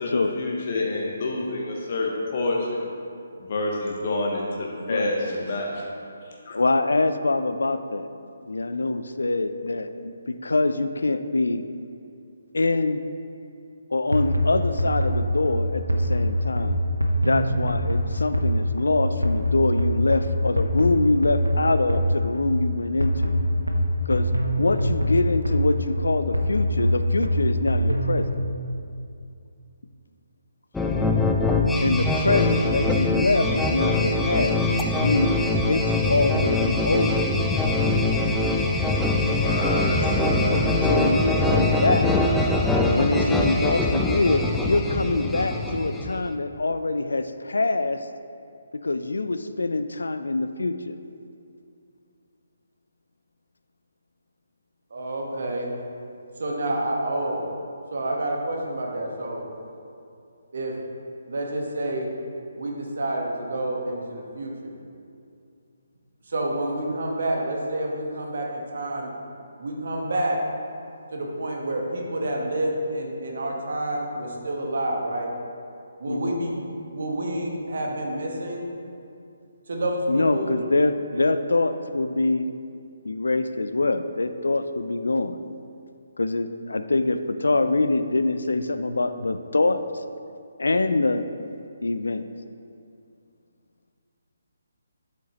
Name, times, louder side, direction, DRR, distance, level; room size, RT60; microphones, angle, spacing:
voice 1, 0.0-2.9 3.4-5.8 6.5-6.6 39.3-40.7, left 2 dB, 40° left, -1 dB, 0.9 m, -28 dB
voice 2, 6.5-8.1 8.4-11.7 12.5-13.0 13.9-16.8 17.2-23.3 24.1-24.3 24.6-28.2 31.8-34.6 35.0-35.3 35.7-37.3 40.8-42.2 42.9-48.0 48.8-51.0 76.1-76.4 80.1-82.5 83.0-85.4 86.2-89.8 90.6-91.2 91.8-92.2, left 2 dB, 65° left, 10 dB, 0.4 m, -24 dB
sound 1, 14.1-28.3, equal, 85° right, 0.8 m, -24 dB
sound 2, 30.7-46.3, left 2 dB, 5° left, 0.4 m, -23 dB
voice 3, 54.9-55.7 56.4-57.4 57.9-59.4 60.5-60.7 61.3-62.1 62.6-64.8 66.3-69.1 69.6-70.4 71.1-75.3 76.0-78.7 79.7-80.7 81.1-81.3, right 1 dB, 55° right, 0 dB, 1.3 m, -28 dB
8.5 x 7.5 x 3.0 m, 2.5 s
figure-of-eight pair, 140°, 0 cm